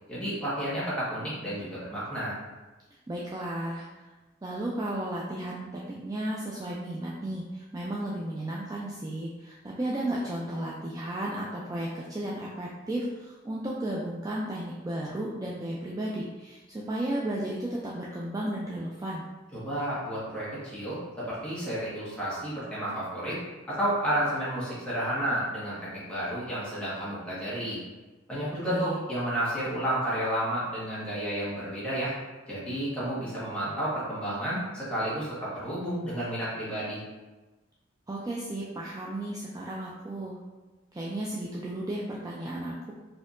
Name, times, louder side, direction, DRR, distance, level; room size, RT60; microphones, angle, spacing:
voice 1, 0.1-2.4 19.5-23.4 23.7-27.8 28.3-32.1 32.5-37.0, right 1 dB, 5° left, -10 dB, 1.3 m, -31 dB
voice 2, 3.1-4.1 4.4-19.2 28.7-29.0 38.1-40.4 40.9-42.9, right 1 dB, 20° right, -5 dB, 0.3 m, -34 dB
4.2 x 2.8 x 2.5 m, 1.2 s
head